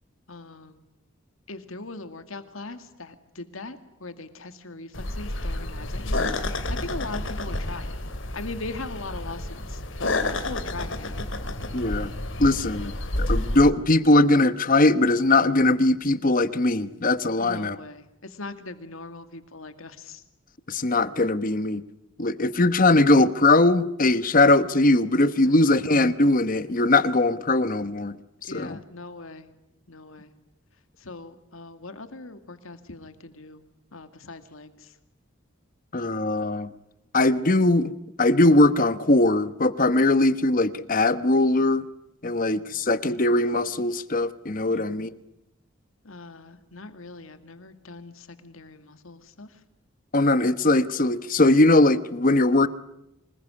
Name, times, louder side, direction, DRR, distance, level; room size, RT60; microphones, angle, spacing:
voice 1, 0.3-0.8 1.5-7.9 8.3-11.3 12.6-12.8 17.4-20.2 25.4-25.8 28.4-29.5 29.9-30.3 31.0-33.6 33.9-34.9 42.2-42.9 44.7-45.2 46.0-49.5, left 3 dB, 80° left, 9 dB, 2.2 m, -40 dB
sound 1, 4.9-13.7, left 2 dB, 65° left, 2.8 m, -30 dB
voice 2, 11.7-12.1 12.4-12.9 13.2-17.8 20.7-21.8 22.2-28.2 28.5-28.8 35.9-36.7 37.1-37.9 38.2-41.9 42.2-45.1 50.1-52.7, left 2 dB, 40° left, 14 dB, 1.0 m, -20 dB
26.0 x 21.0 x 9.7 m, 0.86 s
head